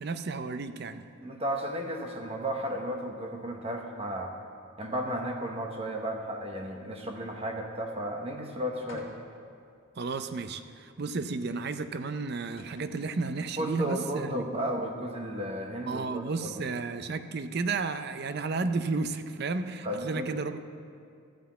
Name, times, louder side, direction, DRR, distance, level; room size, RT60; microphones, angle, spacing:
voice 1, 0.0-1.1 10.0-14.5 15.9-20.6, right 4 dB, 50° right, 10 dB, 0.5 m, -32 dB
voice 2, 1.2-4.3 4.8-9.1 13.6-16.5 19.8-20.4, equal, 25° right, 2 dB, 0.9 m, -34 dB
sound 1, 8.9-9.5 10.1-10.2 12.0-12.1 12.4-13.6, left 1 dB, 65° left, 1.7 m, -50 dB
13.0 x 5.7 x 8.3 m, 2.4 s
head